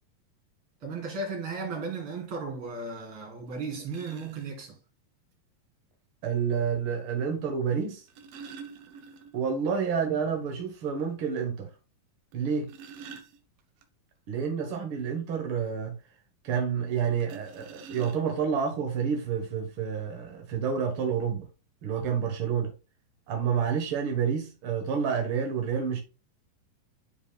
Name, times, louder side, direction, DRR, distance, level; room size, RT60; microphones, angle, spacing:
voice 1, 0.8-4.8, right 4 dB, 40° right, 2.5 m, -35 dB
sound 1, 3.2-3.3 3.9-4.5 5.9-6.0 7.8-9.6 9.9-10.0 10.4-10.5 11.0-11.1 12.3-13.8 17.2-18.6 19.4-19.5 19.9-20.1, right 6 dB, 80° right, 2.5 m, -46 dB
voice 2, 6.2-8.0 9.3-11.7 12.3-12.7 14.3-15.9 16.4-21.5 21.8-22.7 23.3-26.0, right 7 dB, 65° right, 1.3 m, -29 dB
9.5 x 4.9 x 2.2 m
omnidirectional pair, 3.9 m